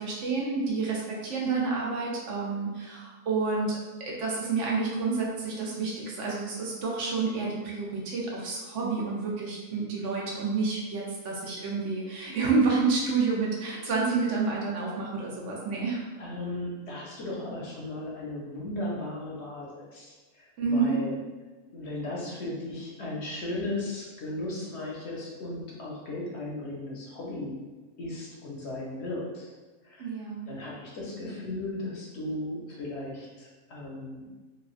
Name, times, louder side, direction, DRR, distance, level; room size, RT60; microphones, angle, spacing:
voice 1, 0.0-16.0 20.6-21.0 30.0-30.5, right 4 dB, 70° right, -3 dB, 0.9 m, -29 dB
voice 2, 16.2-21.2 21.7-27.6 28.0-29.5 29.8-30.1 30.5-34.3, left 2 dB, 60° left, -4 dB, 0.8 m, -36 dB
3.1 x 2.3 x 2.4 m, 1.3 s
omnidirectional pair, 1.4 m